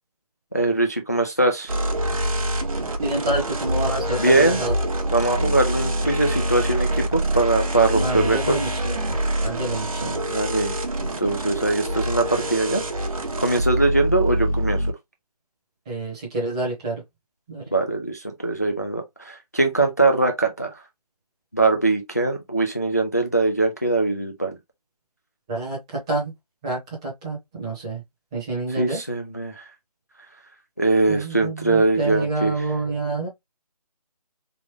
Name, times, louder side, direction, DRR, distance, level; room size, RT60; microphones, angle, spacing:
voice 1, 0.5-1.7 4.2-4.6 5.1-8.6 10.0-12.8 13.4-14.9 17.7-20.8 21.5-24.6 28.8-29.7 30.8-32.5, right 2 dB, 25° left, 0.3 m, -22 dB
sound 1, 1.7-14.9, right 1 dB, 60° right, 0.9 m, -25 dB
voice 2, 3.0-4.7 7.9-10.2 15.9-17.0 17.5-17.7 25.5-26.3 26.6-28.0 28.3-29.0 31.1-33.3, right 2 dB, 10° right, 0.9 m, -28 dB
3.4 x 2.4 x 3.3 m
figure-of-eight pair, 170°, 20 cm